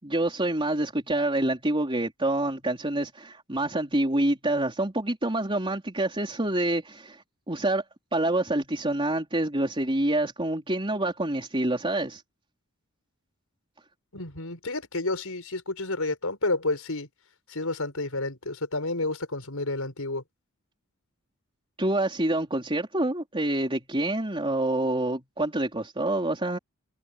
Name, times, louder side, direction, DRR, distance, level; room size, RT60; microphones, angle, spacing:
voice 1, 0.0-7.8 8.1-12.2 21.8-26.6, right 1 dB, 25° right, 3.9 m, -27 dB
voice 2, 14.1-17.1 17.5-20.2, left 2 dB, 80° left, 5.6 m, -30 dB
head